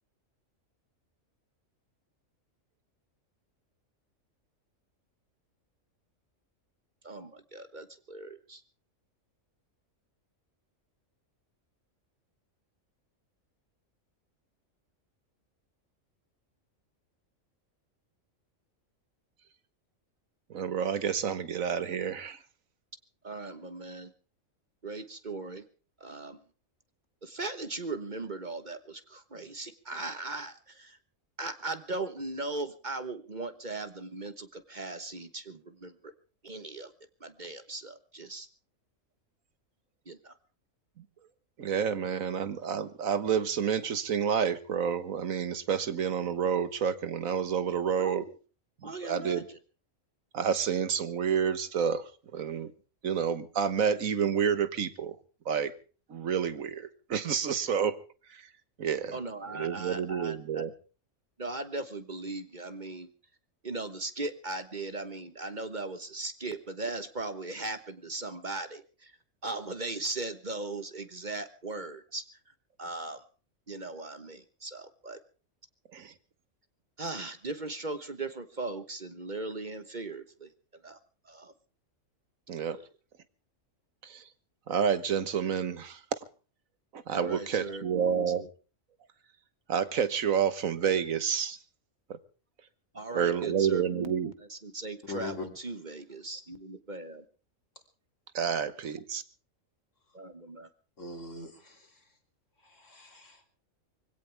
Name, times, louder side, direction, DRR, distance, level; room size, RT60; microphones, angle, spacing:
voice 1, 7.0-8.6 23.2-24.1 24.8-25.6 26.0-26.4 27.2-31.0 31.4-36.1 36.4-36.9 37.2-38.5 40.1-40.3 48.0-48.2 48.8-49.6 59.1-60.7 61.4-63.1 63.6-69.1 69.4-72.2 72.8-73.2 73.7-75.2 77.0-81.0 81.2-81.5 82.7-82.8 87.1-88.5 92.9-97.2 100.1-100.7, right 2 dB, 35° right, 10 dB, 1.3 m, -38 dB
voice 2, 20.5-22.4 41.6-48.2 49.0-49.4 50.3-52.0 52.3-52.7 53.0-55.2 55.4-55.7 56.1-57.9 58.8-59.1 59.6-60.7 75.9-76.1 82.5-82.8 84.0-84.2 84.7-86.0 86.9-88.4 89.7-91.6 93.1-94.3 98.3-99.2, right 7 dB, 80° right, 13 dB, 1.6 m, -29 dB
voice 3, 95.0-95.5 101.0-102.0 102.6-103.5, left 3 dB, 65° left, 4 dB, 3.6 m, -42 dB
24.0 x 17.0 x 3.4 m, 0.38 s
omnidirectional pair, 1.4 m